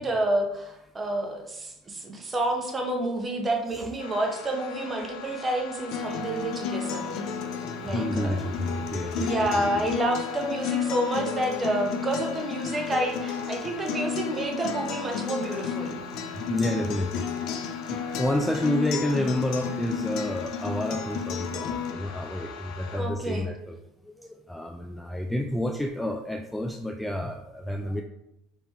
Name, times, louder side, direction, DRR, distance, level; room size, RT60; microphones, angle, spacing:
voice 1, 0.0-7.2 7.8-8.4 9.2-16.0 22.9-23.5, right 1 dB, 25° right, 2 dB, 1.0 m, -29 dB
sound 1, 4.0-23.0, left 6 dB, 80° left, 1.0 m, -43 dB
Acoustic guitar, 5.9-21.9, left 7 dB, 60° left, 0.6 m, -32 dB
voice 2, 7.4-9.9 16.4-17.3 17.9-23.8 24.0-28.0, left 1 dB, 5° left, 3 dB, 0.3 m, -30 dB
3.5 x 3.0 x 4.2 m, 0.88 s
supercardioid pair, 95°, 0 cm